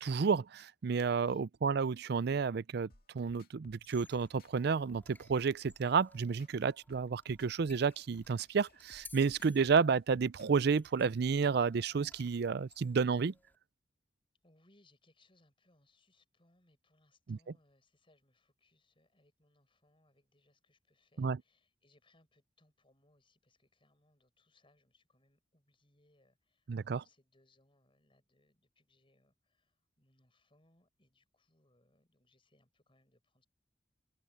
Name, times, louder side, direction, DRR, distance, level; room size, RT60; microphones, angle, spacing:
voice 1, 0.0-2.9 3.1-13.3 17.3-17.4 21.2-21.4 26.7-27.0, right 5 dB, 65° right, 0.4 m, -31 dB
sound 1, 2.9-10.7, left 2 dB, 55° left, 2.2 m, -62 dB
sound 2, 3.8-13.6, left 3 dB, 10° left, 4.2 m, -61 dB
voice 2, 14.4-33.5, left 2 dB, 30° left, 7.4 m, -71 dB
head